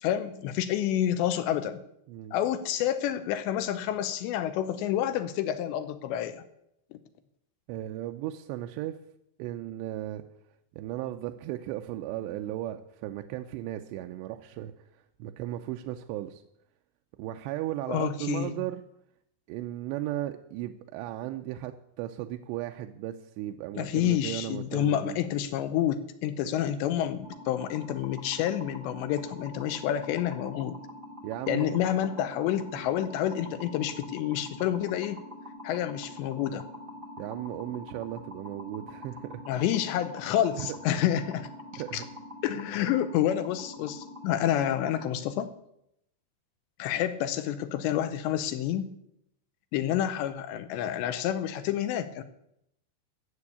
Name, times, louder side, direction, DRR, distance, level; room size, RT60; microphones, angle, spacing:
voice 1, 0.0-1.8 2.3-6.4 6.9-7.0 17.9-18.6 23.8-30.8 31.5-35.2 35.6-36.7 39.5-42.0 42.4-45.5 46.8-49.0 49.7-52.2, left 11 dB, 80° left, 10 dB, 2.9 m, -29 dB
voice 2, 7.7-9.0 9.4-10.2 10.7-16.4 17.2-18.8 19.5-25.2 26.4-26.5 31.2-31.8 32.8-32.9 37.2-39.4 40.6-40.8 41.7-42.1, right 14 dB, 80° right, 5 dB, 2.7 m, -36 dB
sound 1, 27.2-45.1, left 1 dB, 65° right, 0.5 m, -45 dB
14.5 x 6.9 x 8.5 m, 0.78 s
omnidirectional pair, 5.3 m